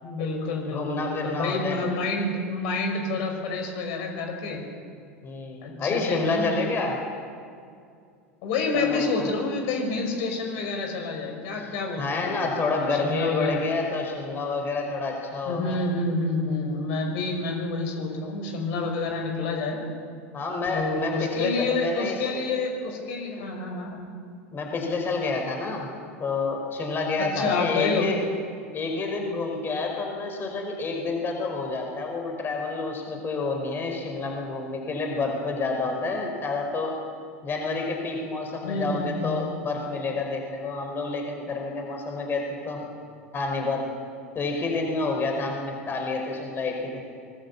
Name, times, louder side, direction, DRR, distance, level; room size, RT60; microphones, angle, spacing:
voice 1, 0.0-4.6 5.6-6.5 8.4-12.5 13.0-13.6 15.5-19.8 20.7-24.0 27.3-28.1 38.6-39.3, left 3 dB, 55° left, 3 dB, 5.6 m, -28 dB
voice 2, 0.6-1.8 5.2-7.0 8.7-9.3 11.6-11.7 12.0-15.8 20.3-22.4 24.5-25.9 26.2-28.2 28.7-36.9 37.4-42.9 43.3-43.8 44.3-47.0, left 3 dB, 30° left, 2 dB, 5.0 m, -29 dB
25.5 x 20.5 x 7.3 m, 2.3 s
figure-of-eight pair, 85°, 7 cm